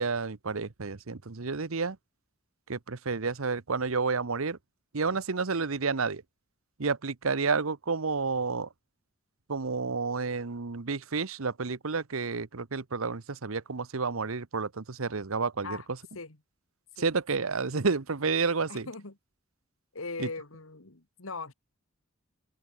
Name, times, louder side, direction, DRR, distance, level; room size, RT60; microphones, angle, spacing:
voice 1, 0.0-2.0 2.7-4.6 4.9-6.2 6.8-8.7 9.5-15.8 17.0-18.9 20.2-20.3, right 4 dB, 90° right, 1.0 m, -30 dB
voice 2, 18.7-19.2 19.9-21.5, left 3 dB, 85° left, 2.5 m, -40 dB
open air
head